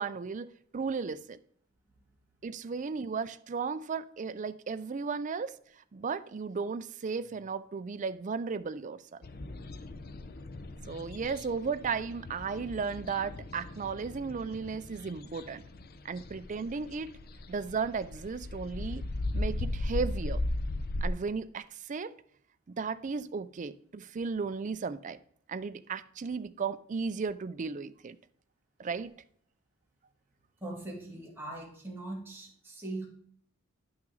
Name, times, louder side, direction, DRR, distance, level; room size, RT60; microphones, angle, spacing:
voice 1, 0.0-1.4 2.4-5.6 5.9-9.2 10.9-15.6 16.0-17.1 17.5-19.0 19.3-20.4 21.0-22.1 22.7-25.2 25.5-28.2 28.8-29.1, right 5 dB, 35° right, 0.4 m, -35 dB
sound 1, 9.2-21.1, left 2 dB, 45° left, 0.6 m, -37 dB
voice 2, 30.6-33.1, right 2 dB, 10° right, 2.3 m, -40 dB
10.5 x 5.9 x 3.9 m
head